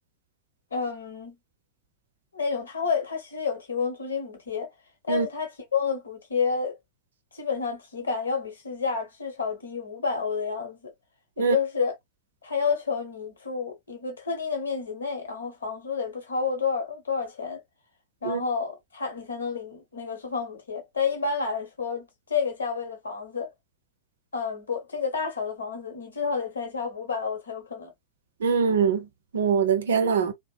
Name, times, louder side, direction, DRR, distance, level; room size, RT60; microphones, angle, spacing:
voice 1, 0.7-1.4 2.3-4.7 5.1-6.8 7.3-10.9 11.4-12.0 12.4-17.6 18.2-23.5 24.3-27.9, left 5 dB, 70° left, 1.0 m, -30 dB
voice 2, 28.4-29.1 29.3-30.3, right 6 dB, 65° right, 0.5 m, -23 dB
2.9 x 2.1 x 2.2 m
figure-of-eight pair, 90°, 0 cm